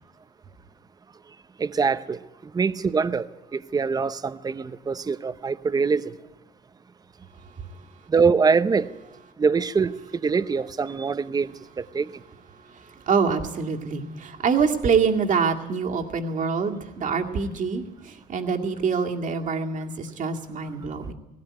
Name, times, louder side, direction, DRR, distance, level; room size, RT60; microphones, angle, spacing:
voice 1, 1.6-2.2 2.5-6.1 8.1-8.9 9.4-9.9 10.2-11.5 11.8-12.1, right 5 dB, 20° right, 0.8 m, -23 dB
voice 2, 13.1-21.1, right 5 dB, 50° right, 2.2 m, -25 dB
18.0 x 17.5 x 9.7 m
cardioid pair, 110°, 17 cm